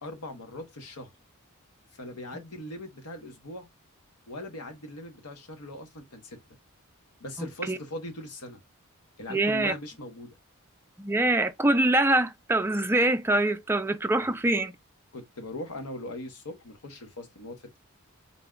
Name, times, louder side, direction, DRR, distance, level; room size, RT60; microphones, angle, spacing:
voice 1, 0.0-1.1 1.9-3.7 4.3-6.4 7.2-8.6 9.2-10.3 14.2-14.3 15.1-17.8, left 1 dB, 85° left, 1.1 m, -40 dB
voice 2, 7.4-7.8 9.3-9.7 11.0-14.7, right 2 dB, 10° right, 0.3 m, -24 dB
3.9 x 2.3 x 3.7 m
head